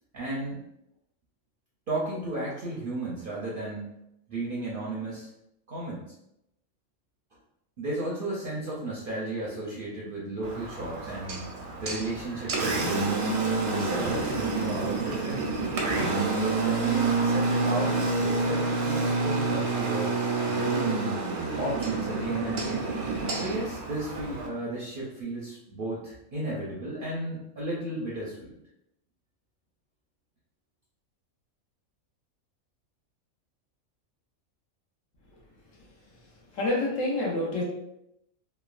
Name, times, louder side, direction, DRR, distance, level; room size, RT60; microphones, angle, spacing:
voice 1, 0.1-0.6 1.9-3.9 4.3-5.3 5.7-6.0 7.8-11.5 11.8-13.1 13.6-15.7 16.4-20.2 20.5-21.1 21.5-22.9 23.3-28.6, right 2 dB, 55° right, -6 dB, 0.6 m, -34 dB
Engine, 10.4-24.5, right 3 dB, 85° right, 1.1 m, -28 dB
voice 2, 35.7-37.6, left 2 dB, 70° left, -2 dB, 1.1 m, -29 dB
3.0 x 2.1 x 2.3 m, 0.81 s
omnidirectional pair, 1.5 m